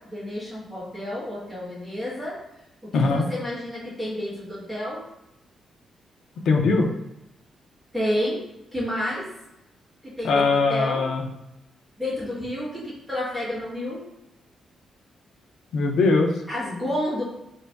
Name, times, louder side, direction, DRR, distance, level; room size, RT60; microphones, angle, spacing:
voice 1, 0.0-2.4 2.8-5.1 7.9-8.4 8.7-9.3 10.0-11.1 12.0-14.0 16.5-17.2, left 1 dB, 5° right, -9 dB, 1.3 m, -30 dB
voice 2, 2.9-3.3 6.5-6.9 10.2-11.3 15.7-16.3, left 3 dB, 65° left, 1 dB, 0.6 m, -20 dB
4.4 x 2.7 x 3.4 m, 0.89 s
wide cardioid pair, 180°, 0 cm